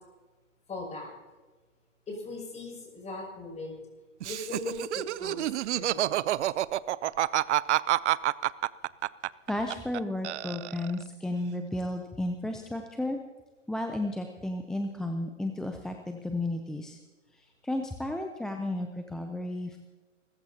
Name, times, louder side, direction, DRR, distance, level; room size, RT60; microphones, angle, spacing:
voice 1, 0.7-1.1 2.1-3.8 4.2-5.5 5.7-6.2, left 2 dB, 20° left, 0 dB, 6.4 m, -39 dB
Laughter, 4.2-10.0 10.2-11.0, right 14 dB, 65° right, 0.6 m, -28 dB
voice 2, 9.5-13.2 13.7-17.0 17.3-19.8, left 1 dB, ahead, 4 dB, 0.4 m, -33 dB
28.5 x 15.0 x 2.8 m, 1.3 s
hypercardioid pair, 125°, 37 cm